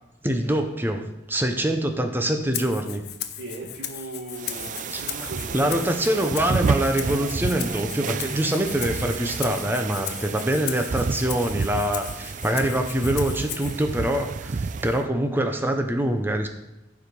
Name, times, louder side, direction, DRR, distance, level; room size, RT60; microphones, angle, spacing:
voice 1, 0.2-3.0 4.9-16.5, right 1 dB, 10° right, 5 dB, 0.8 m, -25 dB
Rattle (instrument), 2.5-13.8, left 11 dB, 55° left, 0.7 m, -37 dB
voice 2, 3.3-5.9 12.3-12.7, right 2 dB, 70° right, -6 dB, 1.9 m, -38 dB
sound 1, 4.4-15.1, right 4 dB, 40° right, 0.4 m, -30 dB
14.5 x 4.9 x 5.4 m, 1.0 s
head